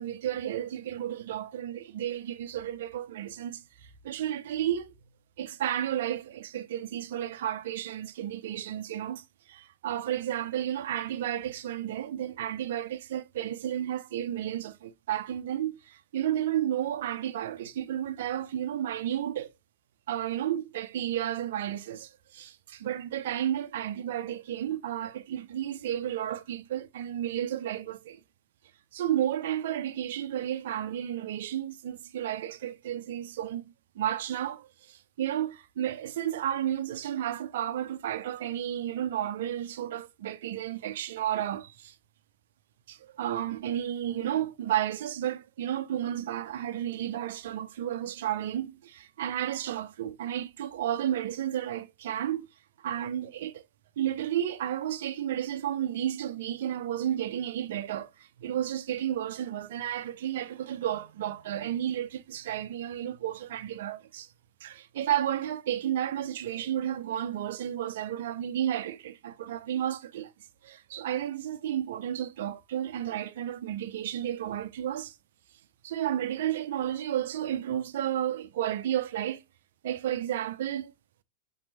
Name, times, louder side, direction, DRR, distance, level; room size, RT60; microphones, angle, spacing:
voice 1, 0.0-4.9 5.4-19.5 20.1-28.2 28.9-42.0 42.9-52.5 52.8-53.6 54.0-64.3 64.6-70.3 70.6-75.2 75.8-79.4 79.8-80.9, right 11 dB, 55° right, 0.4 m, -32 dB
6.0 x 2.9 x 2.7 m
figure-of-eight pair, 90°, 0 cm